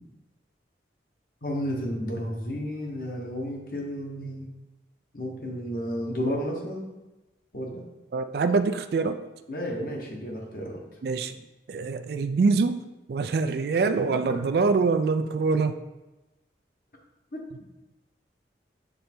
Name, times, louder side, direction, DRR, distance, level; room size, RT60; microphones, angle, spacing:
voice 1, 1.4-4.5 5.1-6.9 7.5-7.8 9.5-10.8 14.1-14.4 17.3-17.4, equal, 50° left, 0 dB, 1.1 m, -32 dB
voice 2, 8.1-9.2 11.0-11.4 11.7-12.8 13.1-15.8, right 4 dB, 60° right, 10 dB, 0.3 m, -24 dB
6.7 x 3.3 x 4.4 m, 1.1 s
head